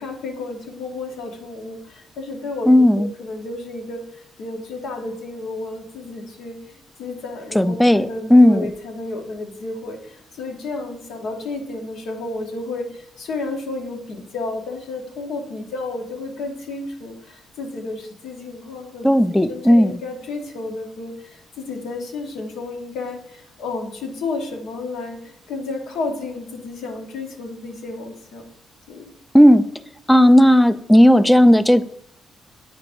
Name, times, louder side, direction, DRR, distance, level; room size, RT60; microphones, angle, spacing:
voice 1, 0.0-2.7 3.0-4.0 4.4-19.1 19.5-25.2 25.5-28.4 28.9-29.1, left 3 dB, 80° left, 2 dB, 1.1 m, -32 dB
voice 2, 2.7-3.1 7.5-8.7 19.0-20.0 29.3-29.6 30.1-31.8, equal, 5° left, 13 dB, 0.3 m, -13 dB
8.4 x 4.7 x 2.6 m, 0.77 s
cardioid pair, 90°, 0 cm